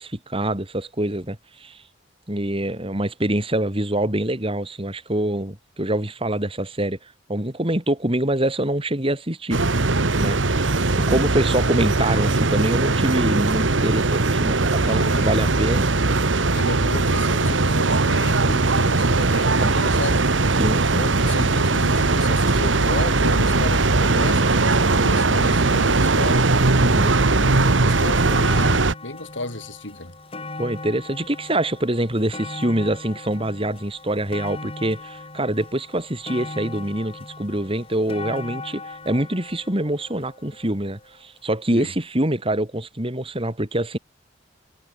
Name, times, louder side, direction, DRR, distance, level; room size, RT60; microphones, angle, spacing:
voice 1, 0.0-1.8 2.3-7.0 7.3-9.6 10.2-15.9 19.4-19.7 20.6-21.1 26.8-27.2 30.6-44.0, right 1 dB, 30° right, 3.0 m, -25 dB
sound 1, 9.5-28.9, right 3 dB, 80° right, 1.5 m, -19 dB
voice 2, 14.6-15.6 16.5-20.3 20.9-26.5 27.2-30.1 41.7-41.9, left 2 dB, 75° left, 7.5 m, -33 dB
sound 2, 27.6-27.7 28.0-41.2 42.0-42.1, left 2 dB, 30° left, 5.7 m, -38 dB
head